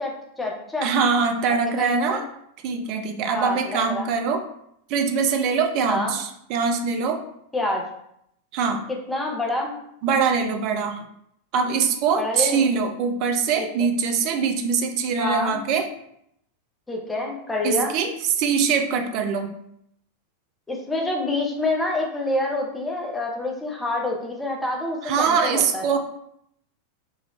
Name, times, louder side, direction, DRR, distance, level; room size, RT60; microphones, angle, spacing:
voice 1, 0.0-0.9 1.8-2.2 3.3-4.1 5.9-6.1 7.5-7.8 9.1-9.7 12.2-12.6 13.6-13.9 15.2-15.6 16.9-17.9 20.7-25.9, left 2 dB, 10° left, 0 dB, 0.8 m, -27 dB
voice 2, 0.8-2.2 2.6-4.4 4.9-7.2 8.5-8.8 10.0-11.0 11.5-15.9 17.6-19.5 25.0-26.0, right 5 dB, 45° right, 5 dB, 0.5 m, -23 dB
4.8 x 2.6 x 3.1 m, 0.74 s
figure-of-eight pair, 90°, 0 cm